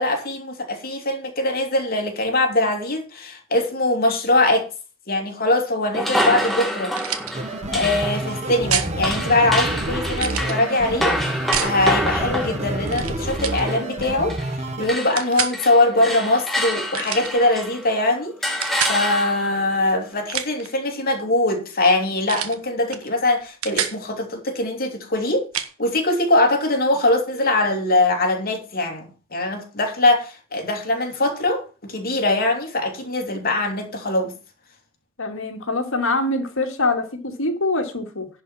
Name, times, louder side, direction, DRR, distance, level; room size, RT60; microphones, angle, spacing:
voice 1, 0.0-4.7 5.1-7.0 7.7-11.2 11.6-14.3 14.8-34.3, left 2 dB, 45° left, 2.8 m, -22 dB
sound 1, 5.9-14.6 14.8-17.9 18.4-19.6, equal, ahead, 2.0 m, -27 dB
sound 2, 7.0-7.3 8.7-8.9 10.2-10.5 11.5-11.8 12.9-13.1 13.4-13.6 15.2-15.6 16.9-17.3 18.6-19.0 20.1-20.7 22.3-22.6 22.9-23.1 23.4-24.0 25.5-25.7, right 9 dB, 85° right, 1.3 m, -27 dB
sound 3, 7.3-14.9, right 1 dB, 30° right, 1.4 m, -28 dB
voice 2, 35.2-38.3, left 2 dB, 65° left, 2.3 m, -24 dB
11.0 x 5.1 x 7.3 m
head